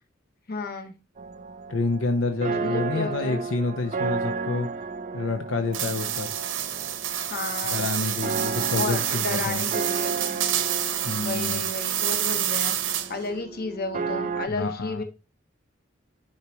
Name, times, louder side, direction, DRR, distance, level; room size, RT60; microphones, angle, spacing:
voice 1, 0.5-0.9 2.6-3.5 7.3-7.9 8.7-10.7 11.2-15.0, left 3 dB, 50° left, 1.3 m, -33 dB
sound 1, 1.2-14.5, right 4 dB, 40° right, 0.5 m, -33 dB
voice 2, 1.7-4.7 5.1-6.3 7.7-9.7 11.0-11.6 14.5-15.0, left 3 dB, 80° left, 0.7 m, -28 dB
sound 2, 5.7-13.3, right 11 dB, 70° right, 0.8 m, -28 dB
10.5 x 4.4 x 3.0 m
head